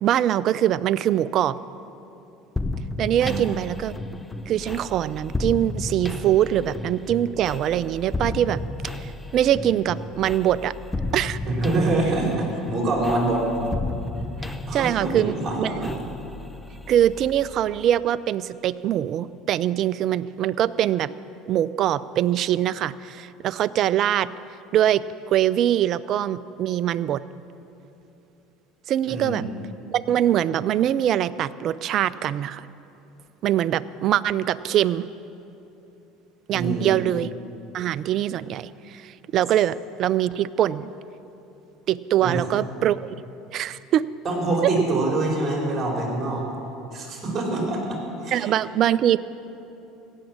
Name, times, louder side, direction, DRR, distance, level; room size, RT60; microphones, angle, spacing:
voice 1, 0.0-1.6 3.0-3.9 4.5-8.6 9.0-10.7 11.1-11.4 14.7-15.9 16.9-21.1 21.5-24.3 24.7-27.2 28.9-29.5 29.9-32.7 33.4-35.1 36.5-37.3 37.7-40.9 41.9-43.1 43.5-44.1 44.6-44.7 48.3-49.2, right 11 dB, 50° right, 17 dB, 0.4 m, -23 dB
sound 1, 2.6-18.2, left 2 dB, 10° left, 0.8 m, -33 dB
voice 2, 11.5-13.5 14.7-15.9 29.0-29.5 36.5-36.9 42.2-42.4 44.2-46.5 46.9-48.5, right 2 dB, 35° right, 0 dB, 4.2 m, -25 dB
16.5 x 7.3 x 8.7 m, 2.9 s
hypercardioid pair, 80°, 0 cm